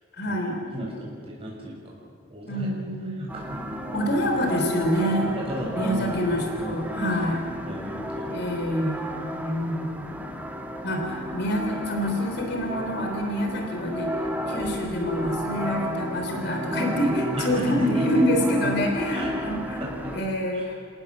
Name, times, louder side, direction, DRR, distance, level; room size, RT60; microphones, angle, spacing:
voice 1, 0.1-0.6 2.5-3.2 3.9-5.3 5.8-7.4 8.3-10.1 10.8-14.1 14.5-19.8 20.1-20.7, equal, 55° left, 2 dB, 3.4 m, -26 dB
voice 2, 0.7-1.8 2.3-2.7 3.1-4.0 5.3-6.2 6.6-8.3 17.3-18.2 18.6-18.7 19.1-19.3 19.8-19.9 20.5-20.7, right 1 dB, 30° right, -3 dB, 7.4 m, -34 dB
sound 1, 3.3-20.2, equal, 10° right, 1.8 m, -33 dB
28.0 x 18.5 x 7.4 m, 2.3 s
head